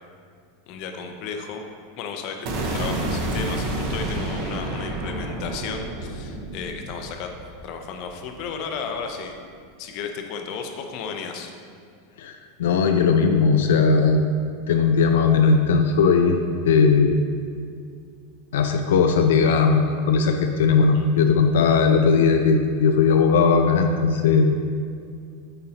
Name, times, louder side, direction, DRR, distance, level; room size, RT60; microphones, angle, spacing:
voice 1, 0.7-1.6 2.0-2.5 2.7-7.3 7.6-9.4 9.8-11.5 20.9-21.1, left 5 dB, 50° left, 4 dB, 0.6 m, -33 dB
sound 1, 2.5-8.5, right 1 dB, 50° right, 1.0 m, -29 dB
voice 2, 12.2-14.2 14.7-16.4 16.6-17.2 18.5-24.5, left 5 dB, 90° left, 5 dB, 0.4 m, -18 dB
8.9 x 4.2 x 2.9 m, 2.2 s
supercardioid pair, 145°, 0 cm